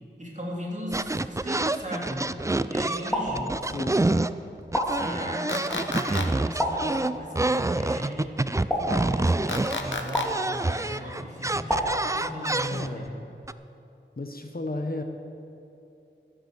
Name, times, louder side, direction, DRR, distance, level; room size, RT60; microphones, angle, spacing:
voice 1, 0.2-2.3 2.7-3.6 4.8-8.4 8.7-13.2, equal, 40° right, -3 dB, 3.3 m, -37 dB
sound 1, 0.9-4.3 4.6-13.1 13.5-13.6, right 2 dB, 15° right, 0.4 m, -27 dB
sound 2, 3.1-4.0 4.7-5.6 6.6-7.4 8.7-9.6 10.1-10.9 11.7-12.7, equal, 5° left, 2.9 m, -30 dB
voice 2, 3.7-4.0 12.7-13.1 14.2-15.0, left 2 dB, 50° left, 5 dB, 1.2 m, -33 dB
sound 3, 5.5-6.3 9.5-10.3, left 3 dB, 75° left, 1.1 m, -31 dB
13.5 x 10.0 x 7.1 m, 2.9 s
wide cardioid pair, 60°, 20 cm